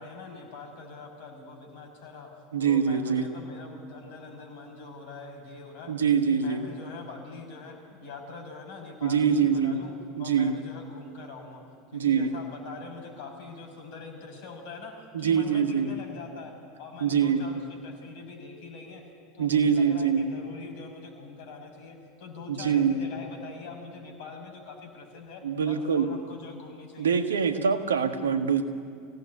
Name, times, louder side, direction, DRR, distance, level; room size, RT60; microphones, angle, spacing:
voice 1, 0.0-5.9 6.2-9.9 10.2-11.6 11.9-19.0 19.3-27.2, left 4 dB, 60° left, 4 dB, 5.8 m, -43 dB
voice 2, 2.5-3.3 5.9-6.6 9.0-9.8 10.2-10.6 11.9-12.4 15.1-16.0 17.0-17.6 19.4-20.3 22.5-23.1 25.4-26.1 27.0-28.6, right 6 dB, 80° right, 7 dB, 1.6 m, -24 dB
24.5 x 17.5 x 9.5 m, 2.4 s
figure-of-eight pair, 80°, 0 cm